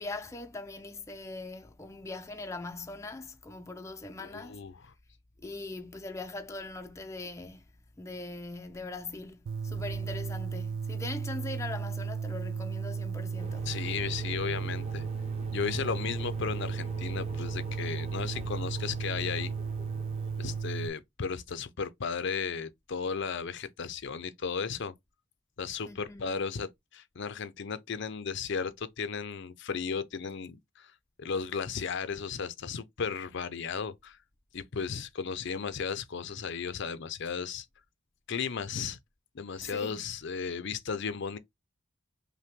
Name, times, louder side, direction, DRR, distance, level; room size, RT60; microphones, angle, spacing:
voice 1, 0.0-4.6 5.4-7.6 8.0-13.8 25.9-26.3 39.6-40.1, left 2 dB, 15° left, 0.4 m, -41 dB
voice 2, 4.2-4.7 13.7-15.1 15.5-19.5 20.4-24.9 25.6-30.9 31.2-34.2 34.5-37.7 38.3-39.0 39.3-41.4, left 6 dB, 65° left, 0.6 m, -35 dB
sound 1, 9.5-20.9, right 5 dB, 70° right, 0.3 m, -35 dB
sound 2, 13.4-20.6, equal, 35° right, 1.1 m, -44 dB
5.5 x 2.2 x 3.6 m
head